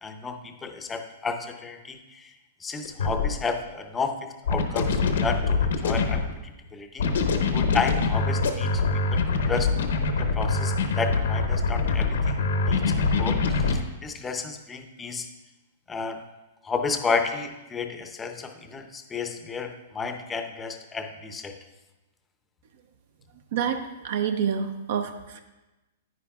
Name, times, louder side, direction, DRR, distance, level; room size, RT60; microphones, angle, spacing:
voice 1, 0.0-2.3 2.6-6.2 6.7-7.1 7.5-8.8 9.1-9.7 10.2-13.4 13.7-15.3 15.9-16.2 16.6-21.6, left 5 dB, 10° left, 6 dB, 0.6 m, -32 dB
sound 1, 2.8-3.3 4.5-6.3 7.0-13.7, left 4 dB, 85° left, 0.9 m, -24 dB
voice 2, 23.5-25.4, right 7 dB, 60° right, 8 dB, 0.6 m, -28 dB
9.8 x 9.5 x 2.3 m, 1.0 s
hypercardioid pair, 155°, 0 cm